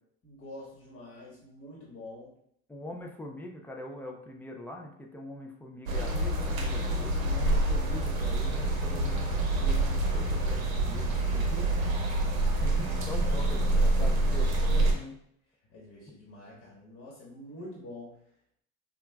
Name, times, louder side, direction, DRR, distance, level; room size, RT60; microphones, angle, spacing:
voice 1, 0.2-2.3 6.7-7.5 11.1-12.0 12.4-13.9 15.7-18.2, left 1 dB, 35° left, -4 dB, 1.3 m, -47 dB
voice 2, 2.7-11.6 12.6-15.2, left 1 dB, 5° left, 1 dB, 0.4 m, -43 dB
sound 1, 5.9-14.9, right 2 dB, 90° right, 0.7 m, -27 dB
5.3 x 2.4 x 2.3 m, 0.70 s
hypercardioid pair, 75°, 40 cm